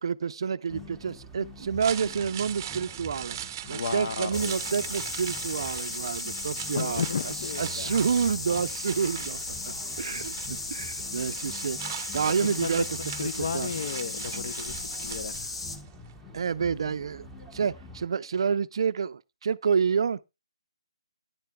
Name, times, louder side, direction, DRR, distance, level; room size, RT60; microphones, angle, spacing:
voice 1, 0.0-3.4 3.7-7.0 7.6-9.4 9.7-13.7 16.3-20.2, right 6 dB, 55° right, 0.5 m, -29 dB
sound 1, 0.7-18.1, left 1 dB, ahead, 1.0 m, -46 dB
sound 2, 1.6-15.8 16.1-16.2, right 11 dB, 30° right, 0.7 m, -41 dB
voice 2, 3.7-4.6 6.7-7.9 12.4-15.5, left 6 dB, 50° left, 0.8 m, -34 dB
sound 3, 4.3-15.8, left 3 dB, 70° left, 1.9 m, -36 dB
15.0 x 10.0 x 2.3 m
hypercardioid pair, 160°, 3 cm